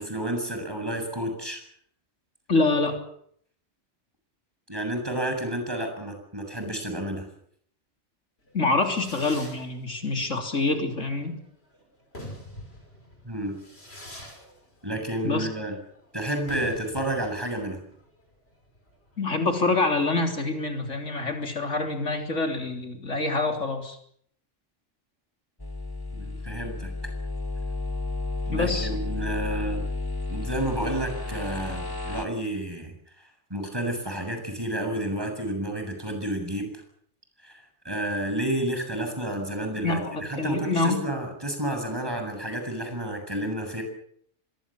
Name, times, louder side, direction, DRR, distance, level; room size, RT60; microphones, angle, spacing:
voice 1, 0.0-1.6 4.7-7.3 13.2-13.6 14.8-15.8 16.1-17.8 26.1-27.1 28.5-29.9 30.3-32.9 33.5-36.8 37.4-43.8, right 1 dB, 20° right, 4 dB, 7.2 m, -30 dB
voice 2, 2.5-3.0 8.5-11.3 15.2-15.5 19.2-24.0 28.5-28.9 39.8-41.0, left 3 dB, 90° left, 4 dB, 3.9 m, -26 dB
Fireworks, 8.5-20.7, left 1 dB, 55° left, 6.6 m, -46 dB
sound 1, 25.6-32.3, left 3 dB, 20° left, 2.1 m, -32 dB
25.0 x 21.0 x 7.5 m, 0.66 s
omnidirectional pair, 1.2 m